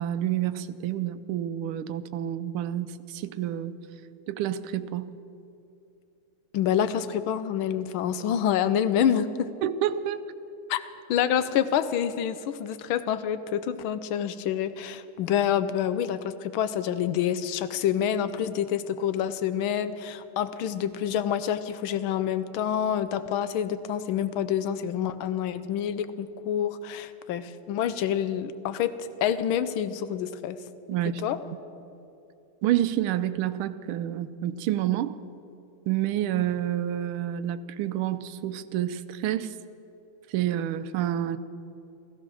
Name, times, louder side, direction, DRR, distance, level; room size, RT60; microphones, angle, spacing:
voice 1, 0.0-3.7 4.3-5.1 9.6-10.3 30.9-31.2 32.6-35.2 35.9-39.5 40.3-41.4, right 11 dB, 90° right, 14 dB, 1.5 m, -28 dB
voice 2, 6.5-9.5 10.7-10.8 11.1-30.6 31.2-31.4, left 9 dB, 80° left, 12 dB, 1.5 m, -27 dB
15.0 x 15.0 x 6.3 m, 2.8 s
omnidirectional pair, 2.3 m